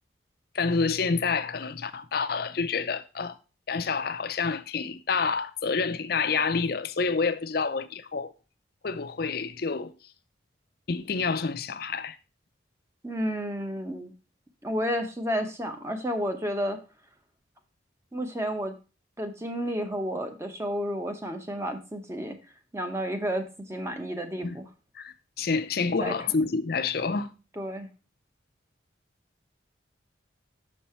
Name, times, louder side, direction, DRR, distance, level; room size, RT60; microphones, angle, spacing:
voice 1, 0.5-3.4 3.7-8.3 8.8-10.0 10.9-12.2 24.4-24.6 25.0-27.3, left 4 dB, 50° left, 0.5 m, -28 dB
voice 2, 13.0-14.1 14.6-16.8 18.1-18.7 19.2-22.4 22.7-24.7 26.0-26.1 27.6-27.9, equal, 15° right, 0.9 m, -31 dB
6.4 x 5.5 x 4.4 m
head